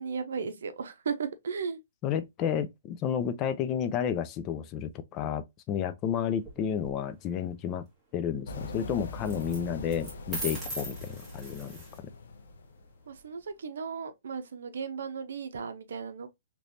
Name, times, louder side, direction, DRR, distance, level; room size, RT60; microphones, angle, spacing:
voice 1, 0.0-1.8 13.1-16.3, right 6 dB, 80° right, 0.6 m, -35 dB
voice 2, 2.0-7.8 8.1-11.8, left 8 dB, 25° left, 0.3 m, -31 dB
sound 1, 6.4-6.9 9.3-9.6 9.9-12.0, right 1 dB, 5° right, 1.3 m, -39 dB
sound 2, 8.5-13.2, left 2 dB, 75° left, 0.7 m, -42 dB
3.2 x 2.9 x 2.5 m
hypercardioid pair, 160°, 0 cm